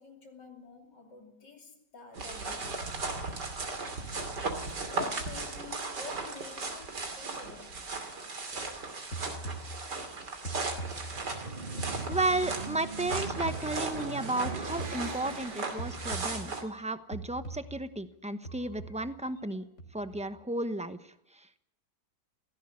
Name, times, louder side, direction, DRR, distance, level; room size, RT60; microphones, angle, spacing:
voice 1, 0.0-2.8 4.9-8.0, left 5 dB, 80° left, 3.6 m, -48 dB
sound 1, 2.1-16.6, right 3 dB, 75° right, 3.3 m, -37 dB
sound 2, 8.5-10.1 10.4-12.8 13.1-15.5 15.8-16.8 17.1-17.9 18.4-19.5 19.8-20.3, right 2 dB, 45° left, 3.8 m, -42 dB
sound 3, 11.0-16.4, right 4 dB, 35° right, 1.3 m, -41 dB
voice 2, 12.1-19.6 19.9-21.0 21.4-21.5, right 2 dB, 5° right, 0.7 m, -33 dB
18.0 x 16.5 x 9.8 m
omnidirectional pair, 1.8 m